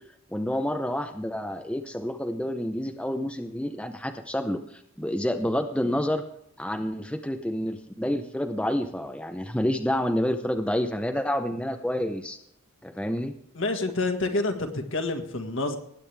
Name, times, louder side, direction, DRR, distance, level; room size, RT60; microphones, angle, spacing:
voice 1, 0.3-6.2 6.6-12.4 12.8-13.3, left 1 dB, 5° left, 5 dB, 0.7 m, -29 dB
voice 2, 13.6-15.8, left 2 dB, 60° left, 4 dB, 1.8 m, -28 dB
20.0 x 9.1 x 3.4 m, 0.72 s
head